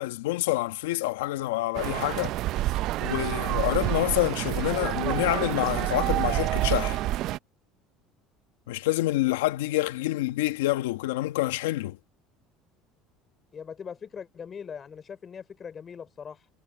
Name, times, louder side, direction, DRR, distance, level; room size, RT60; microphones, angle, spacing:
voice 1, 0.0-2.3 3.0-7.0 8.7-12.0, left 17 dB, 90° left, 1.6 m, -27 dB
sound 1, 1.7-7.4, right 15 dB, 60° right, 0.6 m, -28 dB
voice 2, 13.5-16.5, left 7 dB, 35° left, 4.8 m, -41 dB
supercardioid pair, 90°, 0 cm